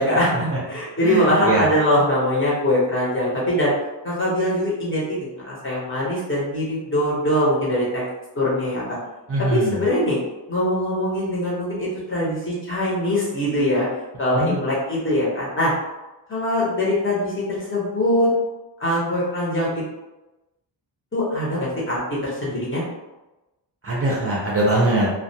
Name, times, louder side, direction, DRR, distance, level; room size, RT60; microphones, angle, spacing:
voice 1, 0.0-3.7 4.0-8.0 8.4-8.8 9.5-10.2 10.5-13.9 14.2-15.7 16.3-18.3 18.8-19.8 21.1-22.8, left 1 dB, 30° left, -7 dB, 0.8 m, -22 dB
voice 2, 1.0-1.6 9.3-9.8 14.3-14.5 23.8-25.1, right 2 dB, 35° right, -6 dB, 0.5 m, -21 dB
2.3 x 2.2 x 2.7 m, 1.0 s
wide cardioid pair, 170°, 43 cm